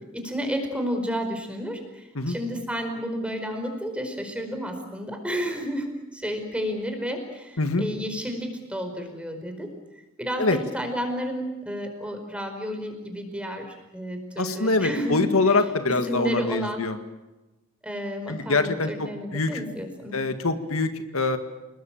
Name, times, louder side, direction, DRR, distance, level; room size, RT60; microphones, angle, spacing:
voice 1, 0.1-9.7 10.2-13.6 13.9-15.3 15.9-16.8 17.8-20.2, equal, 5° right, 5 dB, 4.8 m, -31 dB
voice 2, 14.4-17.0 18.3-19.6 20.1-21.4, left 3 dB, 80° left, 8 dB, 2.0 m, -24 dB
29.0 x 21.0 x 8.9 m, 1.1 s
head